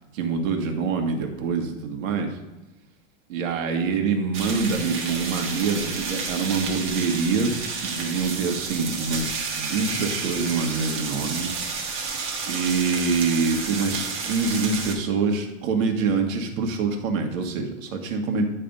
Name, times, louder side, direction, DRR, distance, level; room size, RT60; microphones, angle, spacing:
voice 1, 0.2-2.4 3.3-7.5 7.8-11.5 12.5-18.5, right 4 dB, 85° right, 4 dB, 1.5 m, -25 dB
sound 1, 4.3-14.9, right 4 dB, 30° right, 1.3 m, -31 dB
10.0 x 3.4 x 5.2 m, 1.0 s
supercardioid pair, 160°, 39 cm